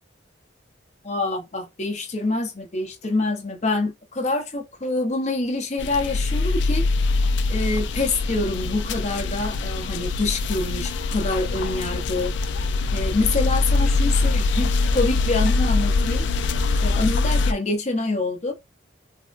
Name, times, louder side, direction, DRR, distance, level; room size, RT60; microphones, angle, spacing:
voice 1, 1.0-6.8 7.5-12.3 12.9-16.3 16.8-18.5, left 2 dB, 35° left, 0.7 m, -26 dB
sound 1, 5.8-17.5, left 3 dB, 65° left, 0.4 m, -23 dB
3.5 x 2.1 x 2.5 m
head